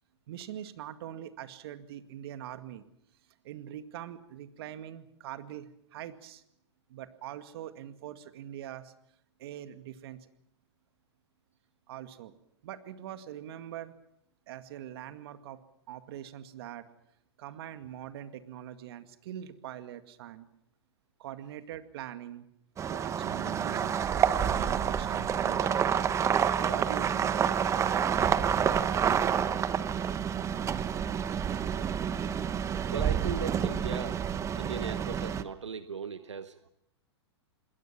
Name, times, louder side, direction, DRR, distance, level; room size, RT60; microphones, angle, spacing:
voice 1, 0.3-2.9 3.4-6.4 6.9-8.9 9.4-10.3 11.9-12.3 12.6-13.9 14.5-15.6 15.9-16.9 17.4-20.5 21.2-22.5 22.9-26.0 26.6-27.9, right 11 dB, 60° right, 9 dB, 2.1 m, -43 dB
sound 1, 22.8-35.4, right 8 dB, 20° right, 1.1 m, -28 dB
voice 2, 32.9-34.2 34.6-36.7, right 6 dB, 90° right, 11 dB, 1.2 m, -37 dB
27.5 x 21.0 x 6.0 m, 0.77 s
hypercardioid pair, 120°, 15 cm